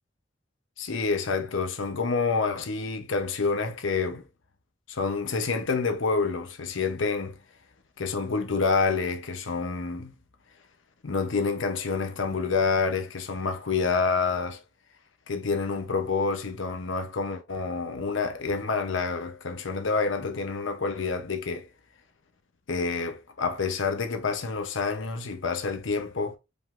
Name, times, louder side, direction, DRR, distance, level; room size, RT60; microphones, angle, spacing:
voice 1, 0.8-4.2 4.9-7.4 8.0-10.1 11.0-14.6 15.3-21.7 22.7-26.4, left 4 dB, 80° left, 0.8 m, -28 dB
5.1 x 3.7 x 2.5 m
head